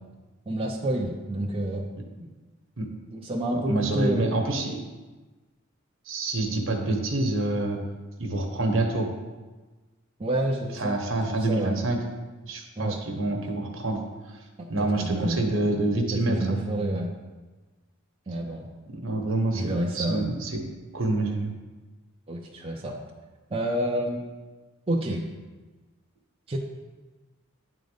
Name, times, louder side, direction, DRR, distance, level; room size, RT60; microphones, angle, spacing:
voice 1, 0.5-1.9 2.2-2.3 3.1-4.4 10.2-11.8 12.8-13.0 14.8-15.4 16.1-17.1 18.3-18.7 19.5-20.3 22.3-23.0 23.5-24.4 24.9-25.2 26.5-26.6, right 1 dB, 25° right, -2 dB, 0.6 m, -29 dB
voice 2, 3.5-4.8 6.1-7.8 8.2-9.1 10.7-12.0 12.4-14.0 14.7-16.4 19.0-20.5 20.9-21.5, right 2 dB, 65° right, 3 dB, 1.2 m, -27 dB
9.6 x 3.9 x 5.1 m, 1.2 s
head